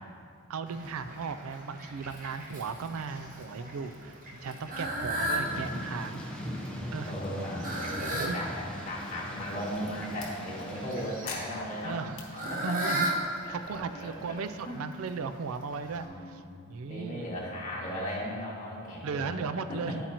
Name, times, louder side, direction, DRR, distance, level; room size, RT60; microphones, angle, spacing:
voice 1, 0.5-6.2 6.9-7.2 8.1-8.4 11.8-12.2 12.6-13.1 13.5-16.4 16.7-17.3 19.0-20.0, right 5 dB, 75° right, 11 dB, 0.4 m, -36 dB
Fowl, 0.7-16.0, right 1 dB, 40° right, 1.1 m, -38 dB
voice 2, 4.8-5.5 6.5-12.0 12.3-13.0 13.4-14.4 14.7-14.8 15.8-19.4 19.7-20.0, equal, 35° left, -6 dB, 2.1 m, -37 dB
Thunder / Rain, 5.4-11.4, equal, 5° left, 0.8 m, -41 dB
sound 1, 6.9-10.3 11.3-12.2, left 3 dB, 60° left, 1.4 m, -46 dB
10.5 x 8.8 x 2.9 m, 2.4 s
head